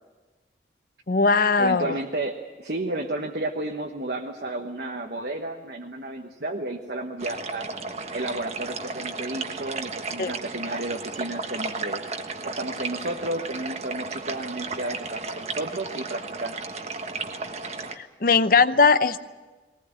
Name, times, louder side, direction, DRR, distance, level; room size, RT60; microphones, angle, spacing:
voice 1, 1.1-2.0 10.2-10.3 18.0-19.2, left 4 dB, 50° left, 13 dB, 0.7 m, -20 dB
voice 2, 1.6-7.7 8.1-12.0 12.6-16.5, right 2 dB, 60° right, 1 dB, 1.2 m, -32 dB
sound 1, 7.2-18.0, right 4 dB, 40° right, 1.4 m, -34 dB
21.0 x 19.0 x 8.9 m, 1.3 s
head